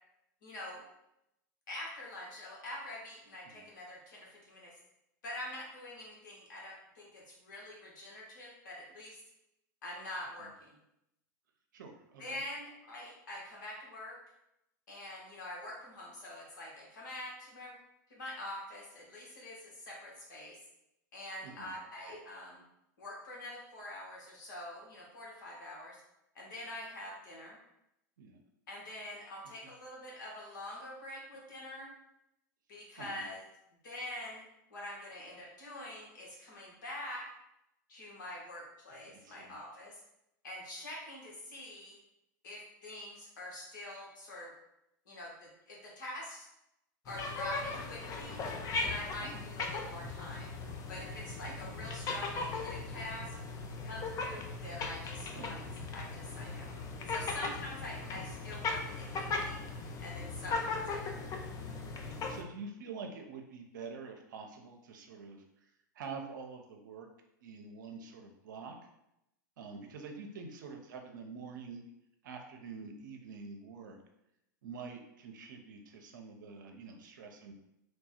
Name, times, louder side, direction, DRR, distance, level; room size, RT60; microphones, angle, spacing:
voice 1, 0.4-0.8 1.7-4.7 5.2-9.2 9.8-10.8 12.2-14.2 14.9-17.7 18.1-20.6 21.1-22.6 23.0-26.0 26.3-27.6 28.7-31.9 32.7-33.4 33.8-34.4 34.7-37.3 37.9-40.0 40.4-42.0 42.4-44.5 45.0-46.5 47.0-48.4 48.8-50.5 50.9-53.3 53.8-56.7 57.1-59.6 60.0-61.2, left 1 dB, 70° left, -3 dB, 1.4 m, -45 dB
voice 2, 11.7-12.4 21.4-21.7 28.2-28.4 33.0-33.2 39.0-39.5 49.2-49.5 51.4-51.7 55.3-55.7 58.1-58.2 62.0-65.7 65.9-67.1 67.4-68.8 69.6-71.8 72.2-74.0 74.6-77.5, right 4 dB, 70° right, 3 dB, 0.7 m, -47 dB
sound 1, 47.1-62.4, left 3 dB, 30° left, 0.5 m, -38 dB
3.2 x 2.3 x 4.2 m, 0.84 s
hypercardioid pair, 95°, 11 cm